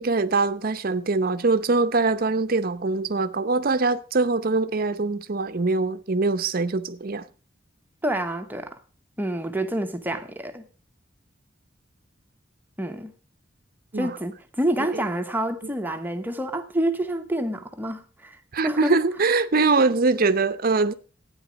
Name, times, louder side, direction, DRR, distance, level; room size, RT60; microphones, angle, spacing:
voice 1, 0.0-7.2 13.9-14.1 14.9-15.0 18.5-20.9, right 3 dB, 50° right, 0.7 m, -23 dB
voice 2, 8.0-8.8 9.2-10.7 12.8-13.1 13.9-18.9, right 1 dB, 10° right, 0.9 m, -28 dB
12.5 x 9.4 x 5.1 m
head